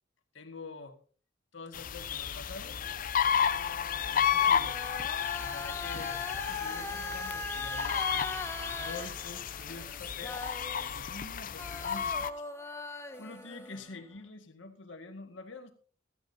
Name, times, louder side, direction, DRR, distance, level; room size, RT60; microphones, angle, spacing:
voice 1, 0.3-1.0 1.5-2.8 4.1-4.8 5.4-8.4 8.8-10.4 10.8-12.3 12.7-15.7, left 3 dB, 80° left, 6 dB, 1.9 m, -46 dB
sound 1, 1.7-12.3, left 8 dB, 45° left, 0.5 m, -32 dB
sound 2, 2.6-11.3 11.6-14.2, left 2 dB, 15° left, 0.9 m, -42 dB
sound 3, 4.0-13.8, right 1 dB, 10° right, 3.0 m, -61 dB
16.0 x 14.0 x 2.8 m, 0.39 s
head